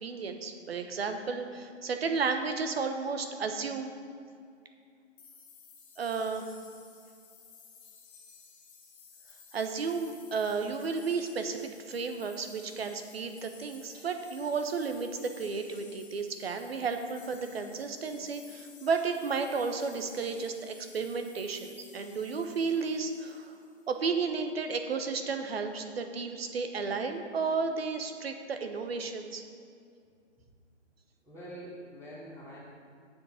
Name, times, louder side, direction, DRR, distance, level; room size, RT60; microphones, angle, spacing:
voice 1, 0.0-3.9 6.0-6.5 9.5-11.6 11.8-23.6 23.9-29.4, right 5 dB, 55° right, 6 dB, 1.1 m, -33 dB
sound 1, 5.2-23.9, left 6 dB, 15° left, 0.8 m, -55 dB
voice 2, 31.2-32.6, right 1 dB, 5° right, -14 dB, 1.6 m, -45 dB
7.7 x 6.2 x 6.4 m, 2.3 s
hypercardioid pair, 155°, 36 cm